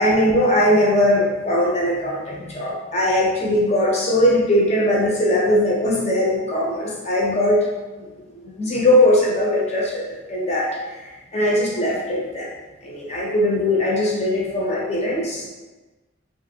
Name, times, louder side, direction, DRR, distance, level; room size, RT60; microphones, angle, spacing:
voice 1, 0.0-7.7 8.3-10.7 11.0-12.5 12.8-15.4, left 1 dB, 35° left, -3 dB, 0.6 m, -20 dB
3.0 x 2.5 x 2.7 m, 1.2 s
head